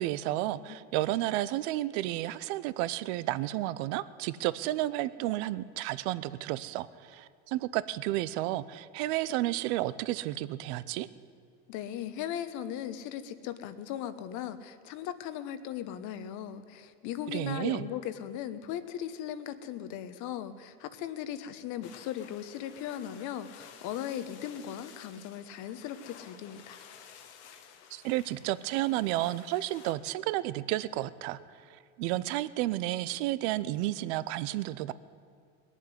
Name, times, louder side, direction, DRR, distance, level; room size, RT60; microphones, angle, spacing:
voice 1, 0.0-11.1 17.3-17.9 27.9-31.4 32.0-34.9, right 16 dB, 75° right, 16 dB, 0.7 m, -31 dB
voice 2, 11.7-26.8, left 10 dB, 60° left, 11 dB, 1.1 m, -38 dB
sound 1, 21.8-29.9, left 8 dB, 85° left, 1.5 m, -53 dB
19.0 x 7.4 x 9.8 m, 2.3 s
supercardioid pair, 105°, 33 cm